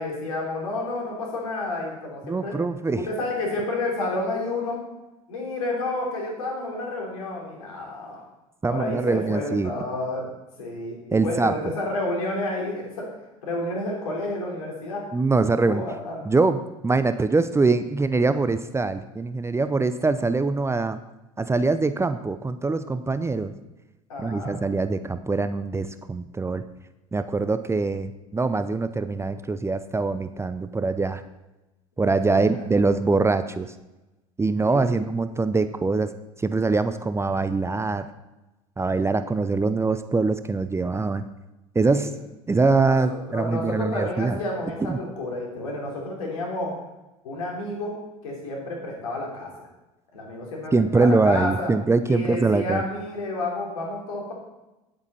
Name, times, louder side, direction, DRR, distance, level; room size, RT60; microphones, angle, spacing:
voice 1, 0.0-2.6 2.9-4.8 5.3-8.2 8.7-10.3 10.6-13.1 13.4-15.0 15.6-16.2 24.1-24.6 32.3-32.4 34.6-35.0 41.8-42.1 42.8-46.7 47.2-47.9 48.2-49.7 50.1-51.7 52.1-54.3, left 2 dB, 80° left, -2 dB, 3.2 m, -30 dB
voice 2, 2.2-3.0 8.6-9.7 11.1-11.5 15.1-15.8 16.2-21.0 21.4-23.5 24.2-26.6 27.1-31.2 32.0-33.7 34.4-36.1 36.4-38.1 38.8-41.2 41.7-42.1 42.5-44.4 44.9-45.0 50.7-52.8, right 3 dB, 15° right, 11 dB, 0.6 m, -23 dB
9.7 x 8.7 x 4.1 m, 1.0 s
hypercardioid pair, 70°, 18 cm